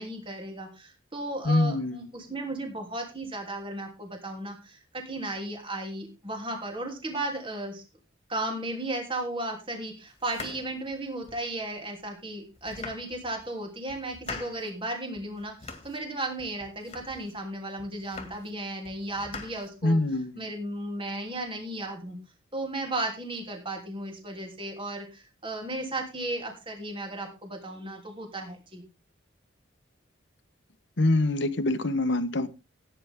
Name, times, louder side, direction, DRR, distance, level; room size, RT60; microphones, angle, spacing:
voice 1, 0.0-7.8 8.3-20.0 20.4-22.2 22.5-28.8, right 1 dB, 25° right, 3.2 m, -35 dB
voice 2, 1.4-2.0 19.8-20.4 31.0-32.5, left 2 dB, 60° left, 1.1 m, -24 dB
sound 1, 10.2-11.5 12.0-12.1 12.5-13.5 13.9-14.7 15.1-16.1 16.4-17.4 17.8-18.6 18.8-20.2, left 3 dB, 30° left, 2.1 m, -44 dB
16.5 x 9.3 x 3.7 m
head